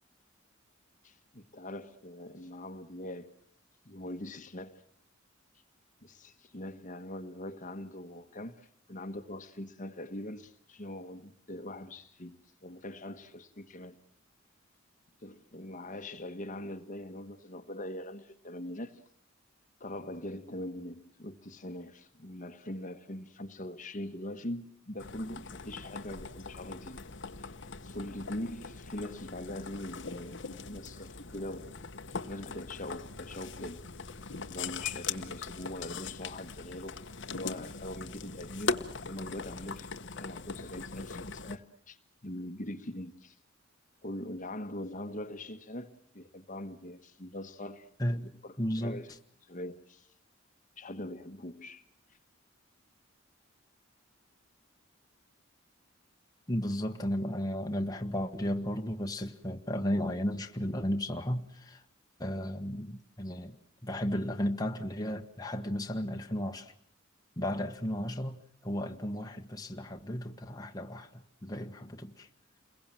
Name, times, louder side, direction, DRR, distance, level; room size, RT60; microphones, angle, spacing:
voice 1, 1.0-3.3 3.8-4.8 6.0-14.0 15.2-19.0 19.8-27.0 27.4-27.5 27.8-31.7 32.3-33.8 34.5-37.0 37.2-42.0 42.2-43.4 44.0-49.1 49.4-50.1 50.8-51.8, left 1 dB, 40° left, 1.4 m, -42 dB
sound 1, 25.0-41.6, left 4 dB, 60° left, 1.2 m, -41 dB
voice 2, 48.0-48.3 48.6-49.0 56.5-61.8 62.2-66.7 67.4-72.3, equal, 20° left, 1.4 m, -34 dB
29.5 x 22.0 x 7.6 m
head